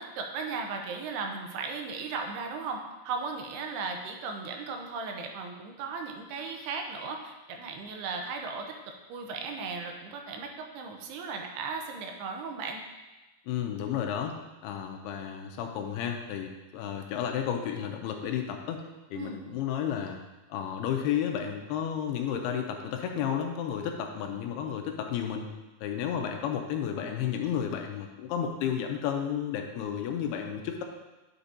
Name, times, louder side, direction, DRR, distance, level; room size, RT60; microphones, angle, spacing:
voice 1, 0.0-12.8 19.1-19.4, right 4 dB, 90° right, 3 dB, 2.8 m, -36 dB
voice 2, 13.5-14.4 14.6-18.8 19.1-20.2 20.5-25.5 25.8-30.8, left 8 dB, 85° left, 4 dB, 2.5 m, -32 dB
10.0 x 5.9 x 2.7 m, 1.1 s
omnidirectional pair, 4.7 m